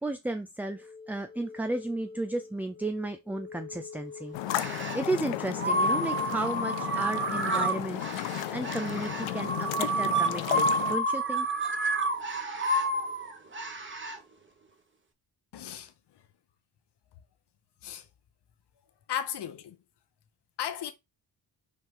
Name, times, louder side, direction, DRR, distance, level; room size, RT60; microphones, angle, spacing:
voice 1, 0.0-11.5, right 2 dB, 5° right, 0.4 m, -34 dB
sound 1, 0.7-9.9, left 4 dB, 20° left, 1.1 m, -47 dB
sound 2, 4.3-11.0, left 14 dB, 90° left, 0.7 m, -34 dB
sound 3, 4.5-5.1 5.6-14.2, right 2 dB, 25° right, 1.2 m, -29 dB
voice 2, 15.5-16.3 17.8-18.1 19.1-19.8 20.6-20.9, left 9 dB, 65° left, 1.2 m, -36 dB
5.7 x 4.6 x 3.8 m
cardioid pair, 115°, 44 cm